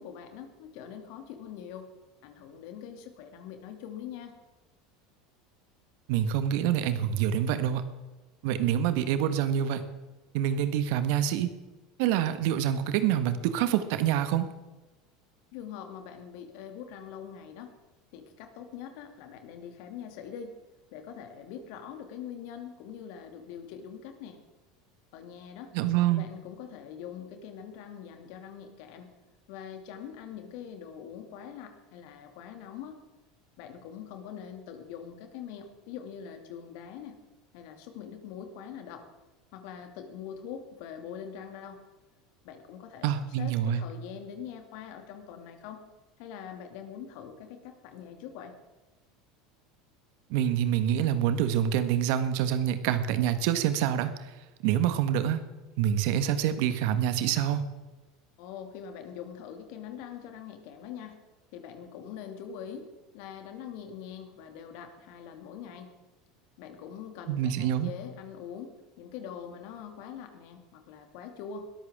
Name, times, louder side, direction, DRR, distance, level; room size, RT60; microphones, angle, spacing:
voice 1, 0.0-1.9 2.2-4.3 15.5-17.7 18.1-20.5 20.9-24.4 25.1-25.7 26.1-29.1 29.5-33.0 33.6-37.2 37.5-39.0 39.5-41.8 42.4-45.8 46.2-48.6 58.4-61.2 61.5-62.9 63.1-65.9 66.6-71.7, left 8 dB, 60° left, 6 dB, 2.5 m, -43 dB
voice 2, 6.1-7.8 8.4-9.8 10.3-11.5 12.0-14.4 25.7-26.2 43.0-43.8 50.3-54.1 54.6-55.4 55.8-57.6 67.3-67.9, right 10 dB, 60° right, 11 dB, 1.4 m, -26 dB
21.0 x 14.0 x 3.7 m, 1.2 s
hypercardioid pair, 75°, 0 cm